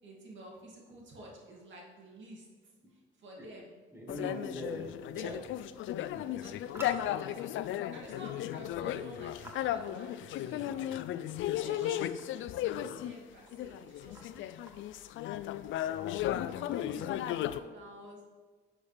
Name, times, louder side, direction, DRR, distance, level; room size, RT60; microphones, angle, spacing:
voice 1, 0.0-3.8 5.1-5.3 6.1-7.5 7.9-12.4 12.9-14.6 16.8-18.2, right 1 dB, 70° right, -2 dB, 2.5 m, -51 dB
voice 2, 3.9-5.4 6.7-7.0 14.1-14.2 16.8-17.0, equal, 10° right, -2 dB, 2.2 m, -41 dB
sound 1, 4.1-13.2 13.5-17.6, left 12 dB, 80° left, 0.4 m, -35 dB
10.5 x 7.3 x 3.4 m, 1.4 s
cardioid pair, 90°, 20 cm